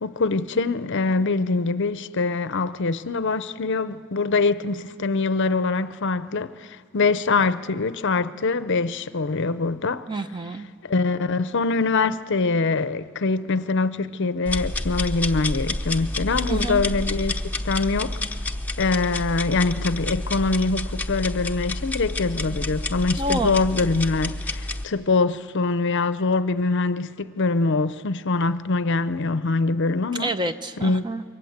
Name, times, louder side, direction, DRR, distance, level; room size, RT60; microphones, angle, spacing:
voice 1, 0.0-10.1 10.8-17.4 17.6-18.2 18.8-30.3 30.8-31.1, left 3 dB, 55° left, 0.7 m, -24 dB
voice 2, 10.1-10.7 16.5-16.8 23.2-23.6 30.2-31.2, right 1 dB, 20° right, 0.7 m, -28 dB
sound 1, 14.5-24.8, left 2 dB, 5° left, 0.9 m, -29 dB
27.5 x 23.0 x 8.1 m
head